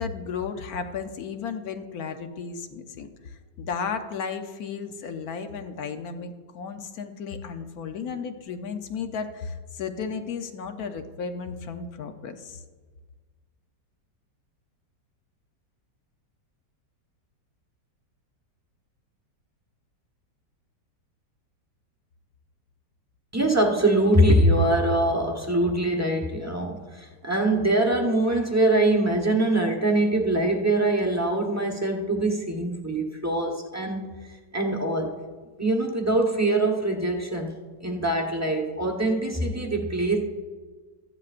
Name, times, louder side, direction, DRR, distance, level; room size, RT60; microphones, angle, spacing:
voice 1, 0.0-12.6, left 6 dB, 65° left, 7 dB, 1.1 m, -34 dB
voice 2, 23.3-35.1 35.6-40.2, right 1 dB, 15° right, 1 dB, 0.7 m, -23 dB
14.5 x 10.5 x 2.5 m, 1.4 s
omnidirectional pair, 1.9 m